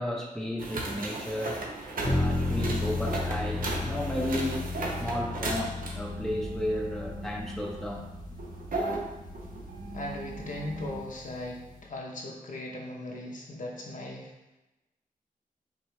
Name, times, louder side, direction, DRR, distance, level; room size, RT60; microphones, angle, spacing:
voice 1, 0.0-1.7 2.1-8.1, left 1 dB, 5° left, -1 dB, 0.6 m, -33 dB
sound 1, 0.6-11.1, right 2 dB, 75° right, 0.7 m, -37 dB
sound 2, 2.0-11.8, left 2 dB, 30° left, 0.8 m, -34 dB
voice 2, 9.9-14.6, left 1 dB, 60° left, -1 dB, 0.8 m, -38 dB
4.9 x 2.7 x 3.1 m, 1.0 s
wide cardioid pair, 85°, 15 cm